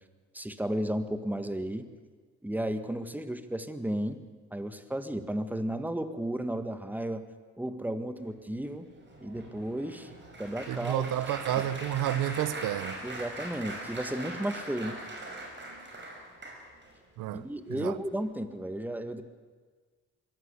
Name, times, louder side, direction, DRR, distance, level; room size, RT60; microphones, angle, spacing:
voice 1, 0.3-1.9 2.4-4.2 4.5-7.2 7.6-8.9 9.2-10.1 10.4-11.0 11.6-11.7 13.0-15.0 17.3-19.2, right 1 dB, 5° right, 1.6 m, -33 dB
Applause, 8.6-16.9 17.6-17.8 18.1-18.3, right 1 dB, 35° right, 5.6 m, -42 dB
voice 2, 10.7-13.0 17.2-18.0, right 12 dB, 85° right, 0.8 m, -31 dB
22.5 x 15.5 x 8.2 m
cardioid pair, 90°, 30 cm